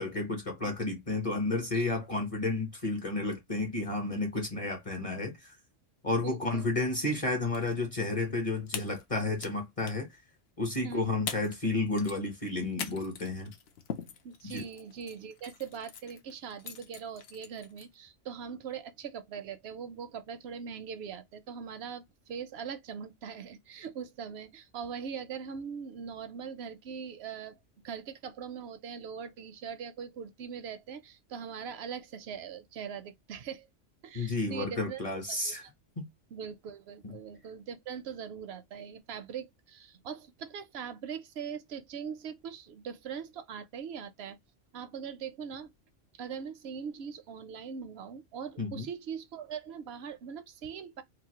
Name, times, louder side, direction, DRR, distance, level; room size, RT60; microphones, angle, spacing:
voice 1, 0.0-5.5 6.0-10.1 10.6-13.5 14.4-14.7 34.1-35.6 36.0-36.1 37.0-37.1 48.6-48.9, left 2 dB, 35° left, 0.7 m, -31 dB
voice 2, 6.2-6.8 10.8-11.2 14.2-27.6 27.8-33.7 34.0-35.6 36.3-44.4 44.7-45.7 46.1-51.0, right 7 dB, 65° right, 0.7 m, -41 dB
sound 1, 7.3-7.7 8.0-8.1 8.7-9.5 9.8-10.1 10.9-11.0 11.3-11.6 11.9-17.9, left 7 dB, 65° left, 0.8 m, -42 dB
3.0 x 2.3 x 2.8 m
omnidirectional pair, 1.3 m